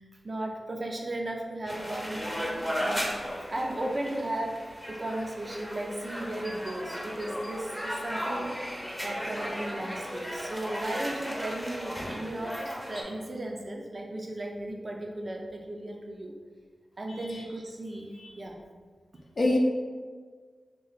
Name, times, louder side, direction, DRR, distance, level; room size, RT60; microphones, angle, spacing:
voice 1, 0.0-3.1 3.5-8.6 9.0-16.3 17.0-18.6, right 1 dB, 45° right, 1 dB, 0.5 m, -35 dB
sound 1, 1.7-13.0, equal, ahead, 0.7 m, -36 dB
voice 2, 17.1-17.4 18.2-18.3 19.4-19.6, left 2 dB, 60° left, -2 dB, 0.5 m, -27 dB
3.0 x 2.2 x 4.0 m, 1.5 s
wide cardioid pair, 85°, 0 cm